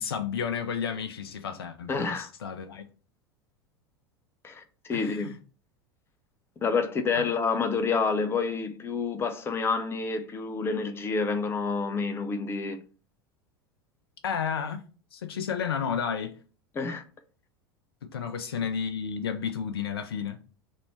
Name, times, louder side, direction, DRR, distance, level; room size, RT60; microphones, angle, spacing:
voice 1, 0.0-2.8 4.9-5.4 7.1-7.3 14.2-14.8 15.1-16.4 18.1-20.4, left 7 dB, 70° left, 0.4 m, -32 dB
voice 2, 1.9-2.3 4.4-5.3 6.6-12.8 16.8-17.0, left 4 dB, 20° left, 0.5 m, -28 dB
3.0 x 2.6 x 4.2 m
figure-of-eight pair, 80°, 13 cm